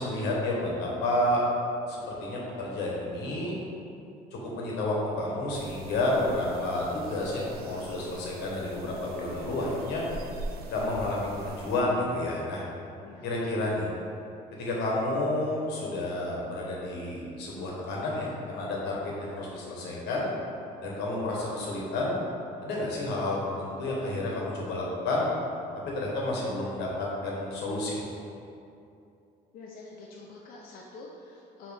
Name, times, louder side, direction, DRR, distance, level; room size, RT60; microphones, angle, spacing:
voice 1, 0.0-1.4 1.9-3.6 4.3-10.0 10.7-12.6 13.2-13.9 14.6-20.3 20.8-22.1 22.6-25.3 25.8-28.1, left 1 dB, 85° left, -3 dB, 1.0 m, -30 dB
sound 1, 5.5-11.8, right 3 dB, 65° right, 0.4 m, -43 dB
voice 2, 13.0-13.6 29.5-31.7, left 3 dB, 60° left, -3 dB, 0.5 m, -47 dB
5.0 x 2.9 x 3.2 m, 2.6 s
cardioid pair, 110°, 17 cm